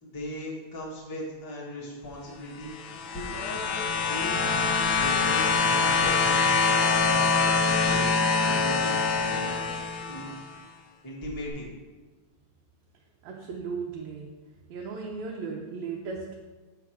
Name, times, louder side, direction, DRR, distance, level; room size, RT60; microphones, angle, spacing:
voice 1, 0.0-9.6 10.0-10.3 11.0-11.7, equal, 20° left, -4 dB, 0.5 m, -38 dB
sound 1, 2.7-10.4 11.5-11.6, left 4 dB, 80° left, 1.9 m, -24 dB
voice 2, 13.2-14.4 14.7-16.4, right 5 dB, 75° right, -1 dB, 1.9 m, -36 dB
7.8 x 3.6 x 5.9 m, 1.3 s
omnidirectional pair, 3.4 m